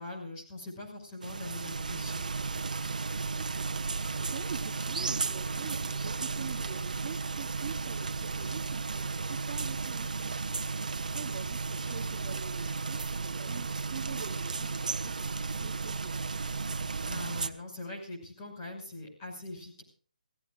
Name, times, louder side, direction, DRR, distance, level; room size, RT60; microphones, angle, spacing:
voice 1, 0.0-2.2 17.0-19.8, left 2 dB, 20° left, -1 dB, 6.0 m, -42 dB
sound 1, 1.2-17.5, right 4 dB, 70° right, 1.2 m, -34 dB
voice 2, 3.4-10.4 11.0-16.7, right 7 dB, 25° right, -1 dB, 1.9 m, -45 dB
28.0 x 16.5 x 2.5 m, 0.41 s
hypercardioid pair, 175°, 4 cm